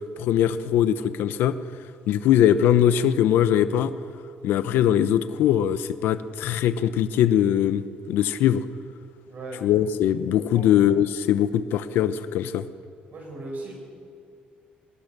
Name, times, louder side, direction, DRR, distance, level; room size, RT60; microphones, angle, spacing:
voice 1, 0.2-1.6 2.1-3.9 4.4-8.6 9.6-12.7, left 10 dB, 85° left, 12 dB, 0.9 m, -21 dB
voice 2, 9.3-9.7 10.5-10.7 13.1-13.7, right 2 dB, 50° right, 0 dB, 8.0 m, -37 dB
22.5 x 19.5 x 6.8 m, 2.3 s
cardioid pair, 140°, 4 cm